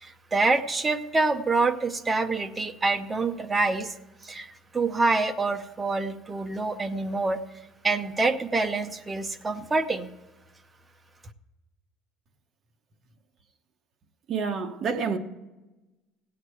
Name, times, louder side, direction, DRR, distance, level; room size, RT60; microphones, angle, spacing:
voice 1, 0.0-3.9 4.2-7.4 7.8-10.1, right 3 dB, 15° right, 0.7 m, -26 dB
voice 2, 14.3-15.2, right 5 dB, 35° right, 1.0 m, -28 dB
17.0 x 8.4 x 4.6 m
cardioid pair, 180°, 0 cm